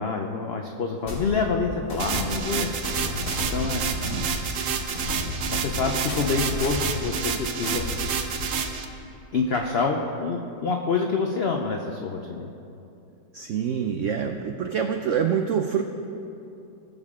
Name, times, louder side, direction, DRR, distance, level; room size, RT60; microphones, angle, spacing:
voice 1, 0.0-2.7 3.5-3.9 5.5-7.9 9.3-12.5, left 4 dB, 85° left, 2 dB, 0.5 m, -27 dB
sound 1, 1.0-8.7, left 2 dB, 60° left, 2.5 m, -33 dB
sound 2, 2.0-8.8, right 7 dB, 60° right, 1.0 m, -29 dB
voice 2, 3.9-4.2 13.3-15.8, right 7 dB, 85° right, 6 dB, 0.6 m, -26 dB
19.0 x 6.6 x 3.6 m, 2.7 s
omnidirectional pair, 1.9 m